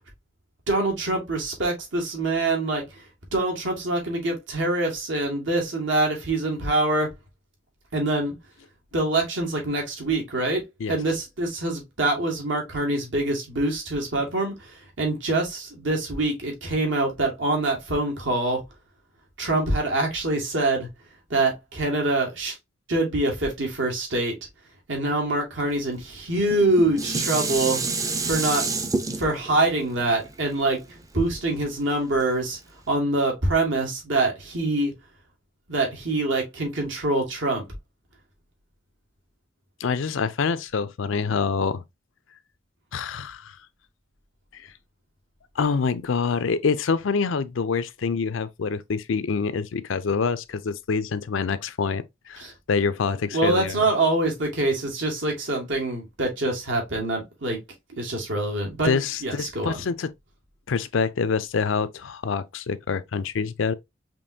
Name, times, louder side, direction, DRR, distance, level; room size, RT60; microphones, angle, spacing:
voice 1, 0.7-2.8 3.3-7.1 7.9-8.3 8.9-10.6 10.9-14.7 15.0-18.6 19.4-20.9 21.3-22.6 22.9-24.3 24.9-27.8 28.2-28.7 29.2-30.8 31.1-32.6 32.9-34.9 35.7-37.7 52.4-52.5 53.3-57.6 57.9-58.9 59.2-59.8, right 2 dB, 75° right, 1.8 m, -25 dB
Dishes pots and pans, 26.4-31.7 32.2-32.3, right 3 dB, 15° right, 0.4 m, -29 dB
voice 2, 39.8-41.8 42.9-43.5 44.5-44.6 45.6-53.8 58.8-60.1 60.7-63.7, left 5 dB, 80° left, 0.5 m, -26 dB
5.2 x 3.0 x 2.6 m
head